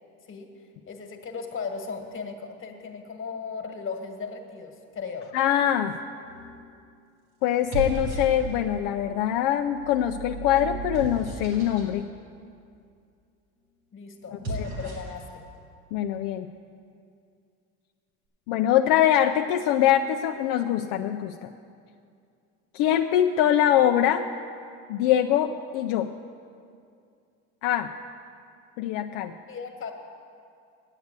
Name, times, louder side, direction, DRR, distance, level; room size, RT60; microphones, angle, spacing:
voice 1, 0.9-5.3 13.9-15.4 29.5-29.9, left 5 dB, 35° left, 5 dB, 1.5 m, -36 dB
voice 2, 5.3-5.9 7.4-12.1 15.9-16.5 18.5-21.5 22.7-24.3 24.9-26.1 27.6-27.9 28.8-29.3, left 11 dB, 75° left, 4 dB, 0.5 m, -23 dB
sound 1, 6.2-6.7 7.5-8.9 9.6-11.9 14.2-15.2, right 2 dB, 85° right, 3.6 m, -35 dB
9.4 x 8.0 x 8.1 m, 2.4 s
supercardioid pair, 95°, 34 cm